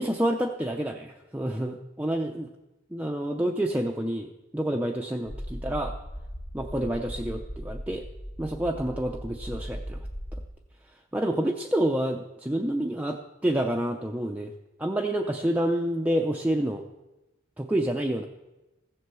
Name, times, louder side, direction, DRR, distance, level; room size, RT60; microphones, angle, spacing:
voice 1, 0.0-2.5 2.9-5.9 6.5-8.0 8.4-10.0 11.1-14.5 14.8-16.8 17.6-18.3, right 1 dB, 10° right, 1 dB, 0.6 m, -28 dB
sound 1, 5.3-10.5, equal, 35° left, 1.2 m, -38 dB
15.0 x 7.9 x 6.9 m, 1.0 s
head